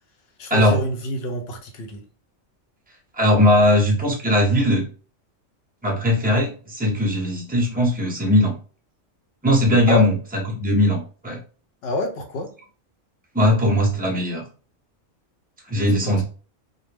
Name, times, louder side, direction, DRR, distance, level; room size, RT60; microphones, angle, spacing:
voice 1, 0.4-2.0 9.9-10.0 11.8-12.5 15.9-16.2, left 2 dB, 65° left, 4 dB, 0.7 m, -27 dB
voice 2, 3.1-4.8 5.8-8.5 9.4-10.2 10.6-11.4 13.3-14.4 15.7-16.2, left 1 dB, 10° right, -1 dB, 0.5 m, -19 dB
2.3 x 2.1 x 3.2 m, 0.38 s
omnidirectional pair, 1.3 m